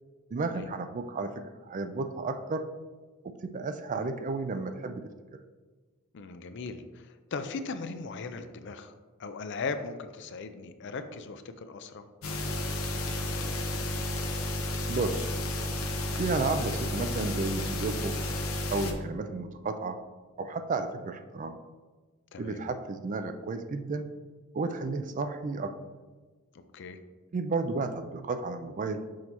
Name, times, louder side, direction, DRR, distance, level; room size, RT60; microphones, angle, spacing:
voice 1, 0.3-2.7 3.2-5.0 14.9-15.3 16.2-18.1 18.7-20.0 20.4-21.6 22.4-24.1 24.5-25.7 27.3-29.0, right 3 dB, 35° right, 9 dB, 0.3 m, -32 dB
voice 2, 6.1-8.9 9.2-12.1 22.3-22.6 26.7-27.0, left 4 dB, 55° left, 9 dB, 0.4 m, -38 dB
sound 1, 12.2-18.9, left 1 dB, 90° left, 0.8 m, -32 dB
6.3 x 5.2 x 2.9 m, 1.3 s
head